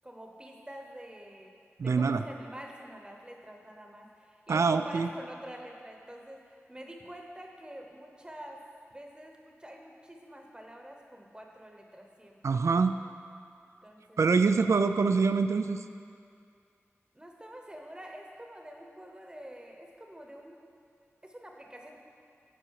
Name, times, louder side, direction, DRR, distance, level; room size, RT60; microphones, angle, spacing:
voice 1, 0.0-1.5 1.8-8.6 8.9-12.6 13.8-14.3 17.1-20.6 21.2-22.0, right 1 dB, 20° right, 1 dB, 0.9 m, -47 dB
voice 2, 1.8-2.2 4.5-5.1 12.4-12.9 14.2-15.8, right 4 dB, 90° right, 9 dB, 0.3 m, -25 dB
10.0 x 5.1 x 4.7 m, 2.4 s
wide cardioid pair, 80°, 5 cm